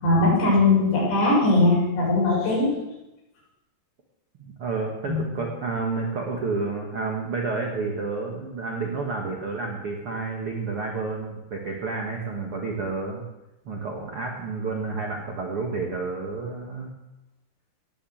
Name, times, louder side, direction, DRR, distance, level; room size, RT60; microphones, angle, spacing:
voice 1, 0.0-2.7 5.1-5.2, left 2 dB, 65° left, -5 dB, 8.5 m, -20 dB
voice 2, 4.4-13.2 13.6-16.9, right 4 dB, 55° right, 0 dB, 1.6 m, -30 dB
18.5 x 7.5 x 8.0 m, 0.93 s
omnidirectional pair, 5.3 m